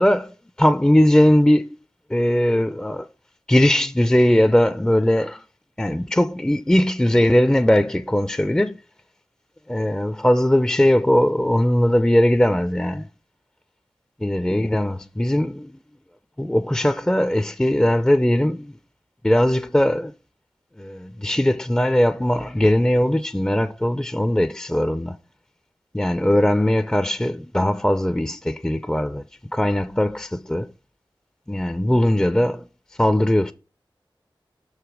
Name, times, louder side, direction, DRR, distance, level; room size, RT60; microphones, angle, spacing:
voice 1, 0.0-1.7 2.1-3.1 3.5-5.4 5.8-8.8 9.7-13.1 14.2-15.7 16.4-18.7 19.2-20.1 20.8-25.1 25.9-29.2 29.5-30.7 31.5-32.6 33.0-33.5, left 1 dB, 10° left, 0.3 m, -19 dB
6.4 x 4.8 x 4.9 m
wide cardioid pair, 45°, 9 cm